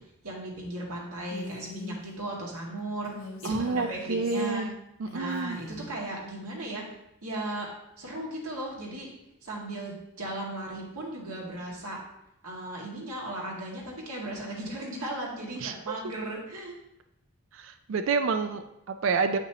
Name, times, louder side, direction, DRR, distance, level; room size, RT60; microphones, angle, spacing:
voice 1, 0.2-3.1 3.4-4.7 5.1-6.9 7.2-7.7 8.0-9.1 9.4-12.0 12.4-16.8, right 1 dB, 90° right, -3 dB, 2.1 m, -36 dB
Female speech woman speaking, 1.3-2.0 3.0-4.5 5.1-5.9, left 2 dB, 75° left, 1.2 m, -42 dB
voice 2, 3.4-4.7 5.0-5.6 15.6-15.7 17.5-19.4, right 4 dB, 60° right, 9 dB, 0.4 m, -28 dB
8.7 x 5.9 x 2.9 m, 0.81 s
head